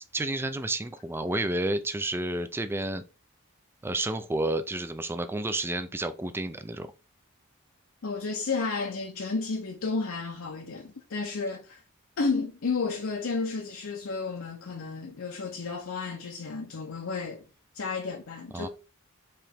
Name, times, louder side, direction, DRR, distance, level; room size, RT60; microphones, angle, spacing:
voice 1, 0.1-3.0 3.8-6.9 18.5-18.7, right 2 dB, 10° right, 0.4 m, -30 dB
voice 2, 8.0-11.8 12.2-17.4 17.7-18.7, left 4 dB, 70° left, 0.7 m, -32 dB
4.7 x 3.1 x 3.4 m
head